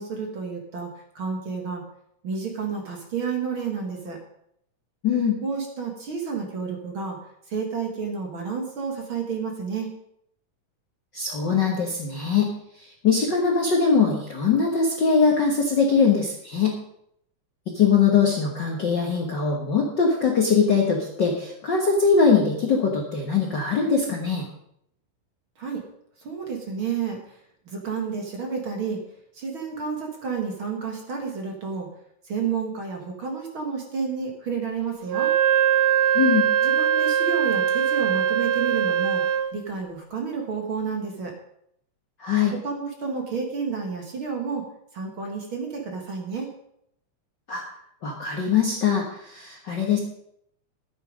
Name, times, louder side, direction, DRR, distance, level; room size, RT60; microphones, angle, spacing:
voice 1, 0.0-1.8 2.2-4.2 5.4-7.2 7.5-9.9 25.6-25.8 26.2-27.4 27.7-29.0 29.3-31.9 32.2-35.3 36.6-39.2 39.5-41.3 42.5-44.6 44.9-46.5, right 5 dB, 45° right, 1 dB, 2.2 m, -30 dB
voice 2, 5.0-5.4 11.1-12.5 12.8-16.8 17.7-24.5 36.1-36.5 42.2-42.5 47.5-47.6 48.0-50.0, left 5 dB, 50° left, 0 dB, 1.4 m, -22 dB
Wind instrument woodwind instrument, 35.1-39.6, right 9 dB, 85° right, 2.3 m, -21 dB
12.5 x 9.1 x 5.2 m, 0.72 s
omnidirectional pair, 3.6 m